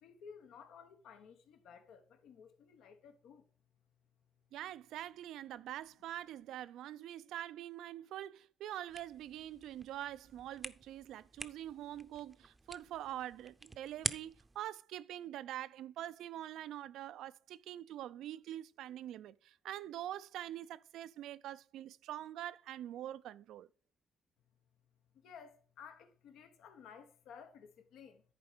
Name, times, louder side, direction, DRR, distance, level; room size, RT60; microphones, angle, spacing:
voice 1, 0.0-3.5 25.1-28.2, left 6 dB, 85° left, 1.1 m, -55 dB
voice 2, 4.5-23.7, right 12 dB, 85° right, 0.4 m, -45 dB
sound 1, 8.9-14.6, right 3 dB, 20° right, 0.6 m, -46 dB
10.5 x 4.4 x 5.0 m
cardioid pair, 90°, 0 cm